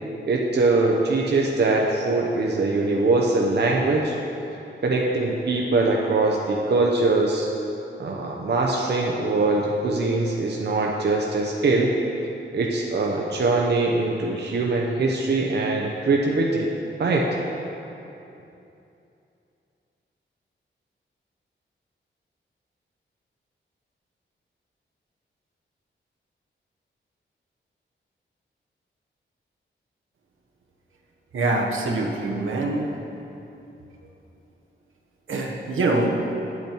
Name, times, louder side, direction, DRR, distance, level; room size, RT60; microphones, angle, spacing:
voice 1, 0.3-4.1 4.8-7.5 8.0-11.9 12.5-16.7 17.0-17.3, right 3 dB, 55° right, -1 dB, 0.8 m, -22 dB
voice 2, 31.3-32.9 35.3-36.1, right 2 dB, 85° right, 0 dB, 1.2 m, -24 dB
10.5 x 8.5 x 4.5 m, 2.8 s
wide cardioid pair, 175°, 20 cm